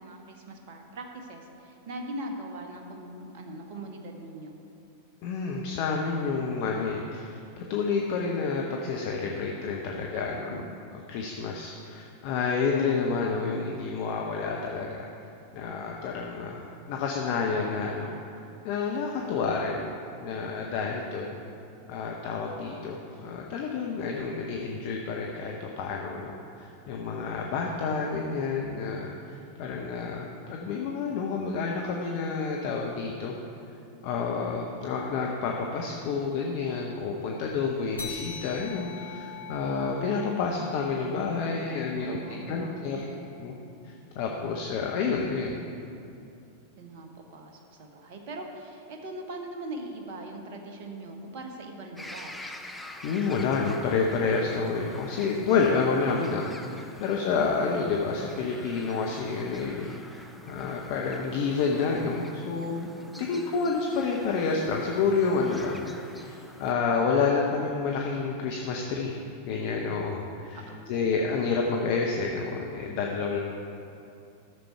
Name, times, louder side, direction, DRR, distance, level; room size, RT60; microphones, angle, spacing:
voice 1, 0.0-4.6 10.1-10.6 20.8-20.9 36.9-37.0 41.9-43.1 46.8-52.3 63.1-63.2 70.5-70.9, right 2 dB, 45° right, 2 dB, 1.3 m, -41 dB
voice 2, 5.2-10.6 10.9-15.1 15.5-18.1 18.6-19.9 20.2-21.3 21.9-33.3 34.0-42.2 42.5-43.1 43.4-43.5 43.8-45.5 53.0-62.9 63.2-73.4, left 4 dB, 45° left, 0 dB, 0.8 m, -29 dB
sound 1, 38.0-42.9, left 5 dB, 80° left, 1.4 m, -43 dB
sound 2, 52.0-66.7, left 1 dB, 5° left, 0.7 m, -47 dB
12.5 x 7.0 x 4.6 m, 2.7 s
figure-of-eight pair, 90°, 0 cm